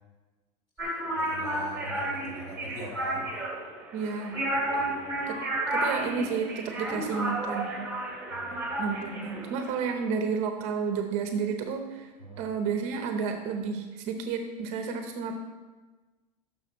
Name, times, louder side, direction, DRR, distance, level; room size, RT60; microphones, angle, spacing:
voice 1, 0.8-3.3 4.5-5.2 8.3-8.7 12.2-12.5, equal, 40° left, -2 dB, 2.6 m, -43 dB
sound 1, 0.8-9.9, right 1 dB, 5° right, 1.9 m, -32 dB
voice 2, 3.9-4.4 5.3-5.4 5.7-7.7 8.8-12.1 12.4-15.3, right 6 dB, 35° right, 5 dB, 0.7 m, -31 dB
10.5 x 6.4 x 4.1 m, 1.3 s
supercardioid pair, 175°, 19 cm